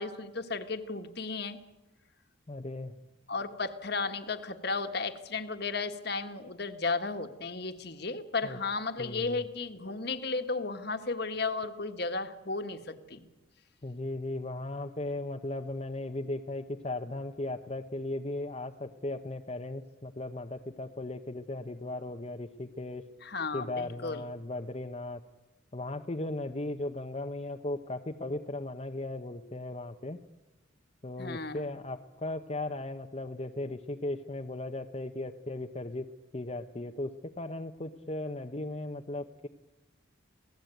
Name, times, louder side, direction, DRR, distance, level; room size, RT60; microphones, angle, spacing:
voice 1, 0.0-1.6 3.3-13.3 23.2-24.2 31.2-31.7, left 4 dB, 50° left, 8 dB, 1.6 m, -34 dB
voice 2, 2.5-2.9 8.4-8.6 9.0-9.4 13.8-23.0 23.5-25.2 25.7-30.2 31.0-36.1 36.3-39.5, left 2 dB, 30° left, 4 dB, 0.8 m, -37 dB
27.5 x 17.5 x 9.2 m, 1.1 s
head